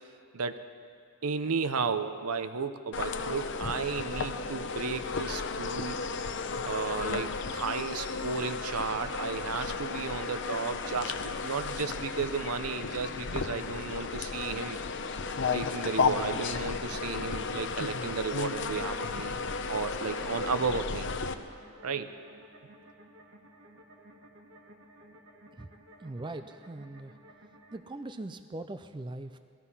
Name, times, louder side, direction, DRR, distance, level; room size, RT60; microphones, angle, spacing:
voice 1, 1.2-6.0 6.7-14.8 15.5-19.3 19.7-21.1 21.8-22.1, right 5 dB, 80° right, 10 dB, 0.8 m, -33 dB
sound 1, 2.9-21.3, left 4 dB, 55° left, 0.7 m, -34 dB
sound 2, 8.1-27.8, right 1 dB, 55° right, 1.6 m, -55 dB
voice 2, 26.0-27.2 27.7-29.4, right 2 dB, 20° right, 9 dB, 0.4 m, -41 dB
18.5 x 14.0 x 5.6 m, 2.3 s
head